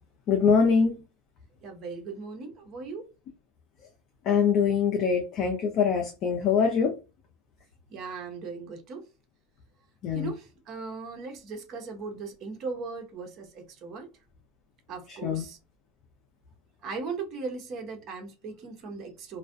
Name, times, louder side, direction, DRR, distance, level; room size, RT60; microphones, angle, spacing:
voice 1, 0.3-1.0 4.3-6.9 10.0-10.3 15.1-15.4, left 6 dB, 45° left, 0.5 m, -23 dB
voice 2, 1.6-3.0 7.9-9.1 10.1-14.1 14.9-15.6 16.8-19.4, right 4 dB, 40° right, 0.8 m, -38 dB
2.3 x 2.1 x 2.5 m
supercardioid pair, 120°, 0 cm